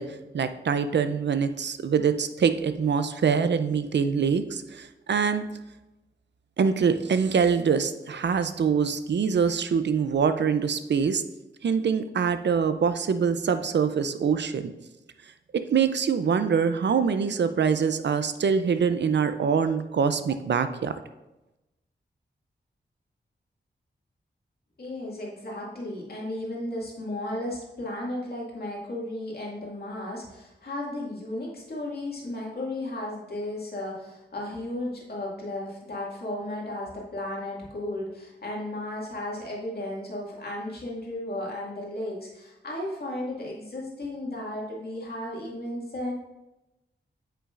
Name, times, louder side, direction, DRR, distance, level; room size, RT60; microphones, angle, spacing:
voice 1, 0.0-5.4 6.6-11.2 11.6-14.7 15.5-20.9, right 6 dB, 65° right, 10 dB, 0.6 m, -24 dB
voice 2, 24.8-46.1, left 1 dB, 55° left, -3 dB, 2.1 m, -34 dB
8.5 x 5.7 x 2.5 m, 0.99 s
cardioid pair, 70°, 19 cm